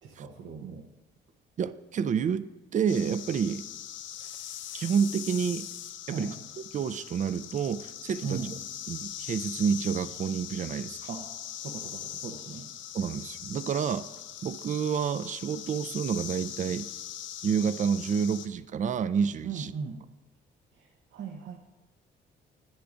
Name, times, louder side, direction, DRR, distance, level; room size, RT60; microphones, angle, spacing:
voice 1, 0.0-0.9 6.1-6.3 8.2-8.6 11.1-11.3 11.6-12.7 19.4-20.0 20.7-21.6, right 5 dB, 75° right, 1 dB, 0.9 m, -38 dB
voice 2, 1.6-2.4 2.7-3.7 4.7-5.7 6.1-6.3 6.7-8.5 8.9-11.1 12.9-14.1 14.4-16.9 17.4-19.7, right 7 dB, 40° right, 14 dB, 0.4 m, -29 dB
sound 1, 2.9-18.5, left 11 dB, 75° left, 0.5 m, -41 dB
10.0 x 9.4 x 2.6 m, 1.1 s
cardioid pair, 90°, 20 cm